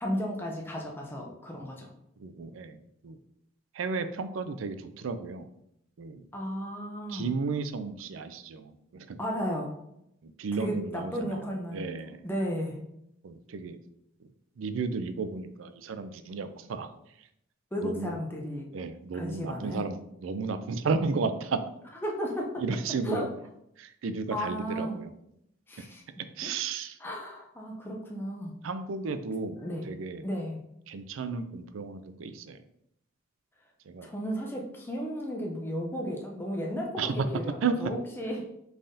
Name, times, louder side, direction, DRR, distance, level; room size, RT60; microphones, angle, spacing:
voice 1, 0.0-1.9 6.3-7.3 9.2-9.8 10.5-11.9 12.2-12.8 17.7-18.7 19.1-19.8 22.0-22.6 23.0-23.3 24.3-25.0 25.7-26.0 27.0-28.6 29.6-29.9 30.2-30.6 34.0-38.5, equal, 10° left, -1 dB, 0.6 m, -34 dB
voice 2, 2.2-2.8 3.0-3.2 3.7-5.5 6.0-6.3 7.1-9.2 10.2-12.2 13.2-13.8 14.6-16.9 17.8-18.2 18.7-21.6 22.6-23.3 23.8-25.1 26.4-27.0 28.6-29.6 29.9-30.3 30.9-32.6 33.9-34.1 37.0-37.3 37.6-37.7, right 4 dB, 85° right, 11 dB, 0.4 m, -33 dB
5.4 x 3.5 x 2.7 m, 0.78 s
head